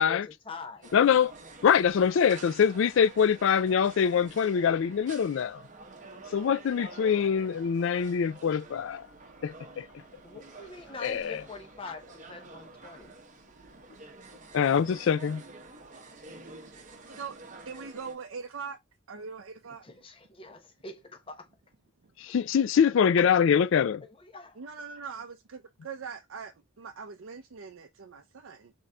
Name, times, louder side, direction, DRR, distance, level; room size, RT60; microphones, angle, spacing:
voice 1, 0.0-0.9 9.7-9.9 10.2-13.1 19.8-21.5 22.2-22.3 23.2-23.3 23.6-24.6, left 3 dB, 25° left, 0.8 m, -44 dB
sound 1, 0.8-18.2, right 3 dB, 35° right, 0.8 m, -49 dB
voice 2, 0.9-1.3 1.6-5.6 6.3-9.0 9.4-9.9 11.0-11.4 14.5-15.4 22.2-24.0, left 7 dB, 60° left, 0.3 m, -24 dB
voice 3, 17.6-18.8 19.1-19.8 22.0-22.1 24.6-28.7, right 5 dB, 65° right, 0.5 m, -42 dB
4.1 x 3.8 x 2.2 m
head